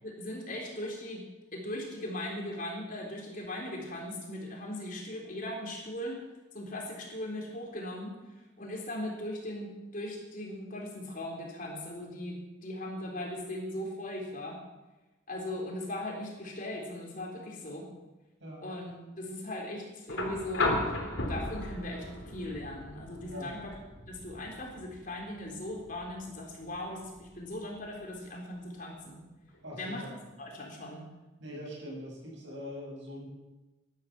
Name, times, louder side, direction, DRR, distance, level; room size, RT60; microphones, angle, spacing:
voice 1, 0.0-6.2 6.5-8.2 8.6-14.6 15.3-17.9 18.6-21.0 21.3-23.7 24.1-29.2 29.7-30.1 30.4-31.1, left 1 dB, 45° left, 0 dB, 3.8 m, -39 dB
voice 2, 18.4-18.7 23.2-23.6 29.6-30.2 31.4-33.3, equal, 65° right, -2 dB, 7.4 m, -42 dB
sound 1, 20.1-28.1 29.5-29.6, left 2 dB, 80° left, 3.6 m, -36 dB
18.0 x 12.0 x 6.0 m, 1.1 s
head